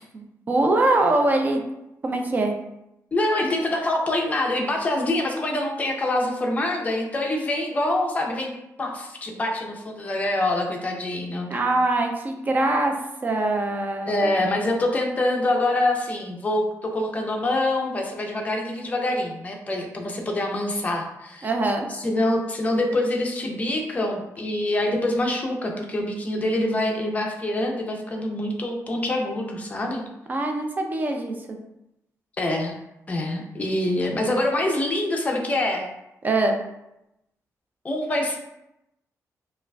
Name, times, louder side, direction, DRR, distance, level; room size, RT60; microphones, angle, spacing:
voice 1, 0.1-1.6 2.0-2.5 11.5-13.0 13.2-14.6 21.4-21.9 30.3-31.6 36.2-36.6, right 2 dB, 30° right, 3 dB, 0.4 m, -23 dB
voice 2, 3.1-8.5 8.8-11.5 14.1-21.5 21.9-30.0 32.4-32.8 33.1-35.9 37.8-38.4, left 1 dB, 25° left, 1 dB, 0.5 m, -25 dB
4.8 x 2.4 x 2.2 m, 0.87 s
wide cardioid pair, 160°, 6 cm